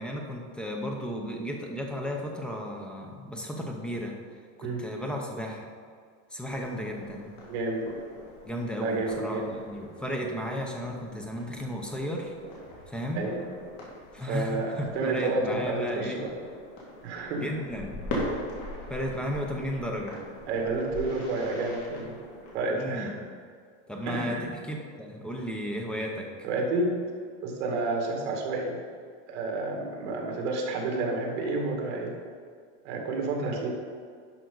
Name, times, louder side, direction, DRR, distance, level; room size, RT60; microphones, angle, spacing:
voice 1, 0.0-4.2 4.6-5.6 6.3-7.3 8.5-12.3 12.9-13.3 14.1-16.2 17.4-17.9 18.9-20.2 22.7-23.1 23.9-26.3, equal, 5° left, 1 dB, 0.6 m, -34 dB
sound 1, 6.4-22.6, left 1 dB, 40° left, 2.4 m, -41 dB
voice 2, 7.5-7.9 8.8-9.5 13.2-13.4 14.2-16.3 17.0-17.4 20.5-22.2 22.5-23.2 24.0-24.5 26.4-27.0 27.4-28.8 29.3-32.2 32.8-33.7, right 2 dB, 65° right, 1 dB, 2.1 m, -30 dB
11.0 x 5.7 x 3.9 m, 2.1 s
supercardioid pair, 170°, 37 cm